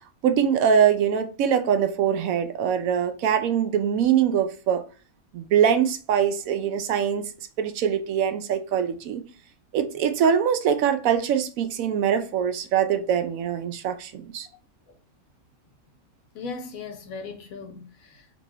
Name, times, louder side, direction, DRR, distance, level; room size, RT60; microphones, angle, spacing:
voice 1, 0.2-4.8 5.3-7.3 7.6-9.2 9.7-14.5, right 8 dB, 80° right, 1.0 m, -23 dB
voice 2, 16.3-18.4, left 4 dB, 80° left, 1.3 m, -38 dB
4.0 x 2.6 x 2.9 m
omnidirectional pair, 1.4 m